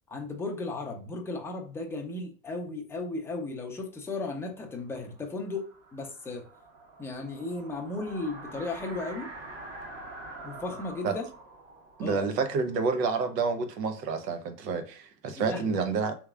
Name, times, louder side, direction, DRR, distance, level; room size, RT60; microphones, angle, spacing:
voice 1, 0.1-5.7 5.9-6.4 7.0-9.3 10.4-11.2 12.0-12.2 15.3-15.9, left 3 dB, 5° left, 0.4 m, -35 dB
sound 1, 4.8-13.6, right 2 dB, 45° right, 1.6 m, -46 dB
voice 2, 12.0-16.2, right 5 dB, 80° right, 0.9 m, -29 dB
3.5 x 3.1 x 2.3 m
hypercardioid pair, 115°, 48 cm